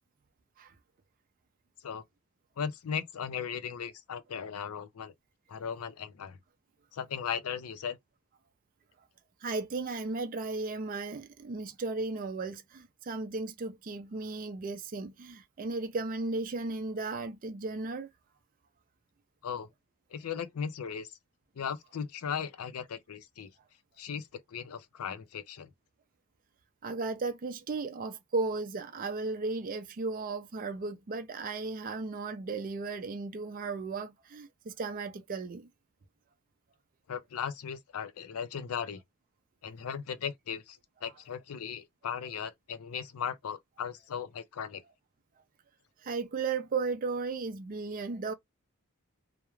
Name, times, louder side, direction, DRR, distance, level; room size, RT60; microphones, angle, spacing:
voice 1, 2.6-5.1 5.5-6.4 6.9-8.0 19.4-19.7 20.1-21.2 21.6-23.5 24.0-25.7 37.1-39.0 39.6-44.8, left 7 dB, 75° left, 0.4 m, -37 dB
voice 2, 9.4-18.1 26.8-35.7 46.0-48.3, right 3 dB, 40° right, 0.4 m, -35 dB
2.3 x 2.0 x 2.9 m
head